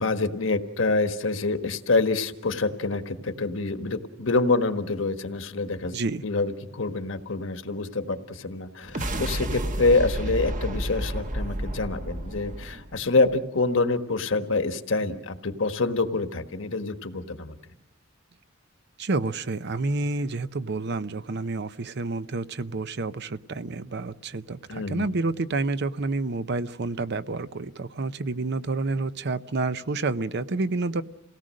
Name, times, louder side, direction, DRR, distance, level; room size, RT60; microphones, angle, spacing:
voice 1, 0.0-5.9 6.2-17.6 24.7-25.1, left 3 dB, 70° left, 8 dB, 1.4 m, -26 dB
voice 2, 5.9-6.2 19.0-31.0, right 3 dB, 60° right, 14 dB, 0.7 m, -29 dB
sound 1, 8.8-13.3, right 1 dB, 40° right, 1.2 m, -31 dB
28.0 x 18.0 x 6.4 m, 0.83 s
head